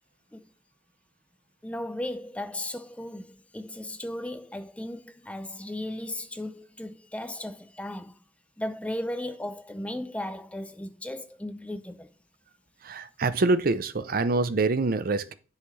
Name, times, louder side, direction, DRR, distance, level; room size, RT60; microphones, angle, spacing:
voice 1, 1.6-8.1 8.6-12.1, left 1 dB, 5° left, 0.4 m, -36 dB
voice 2, 12.8-15.3, right 3 dB, 50° right, 0.5 m, -25 dB
10.0 x 5.7 x 3.2 m
head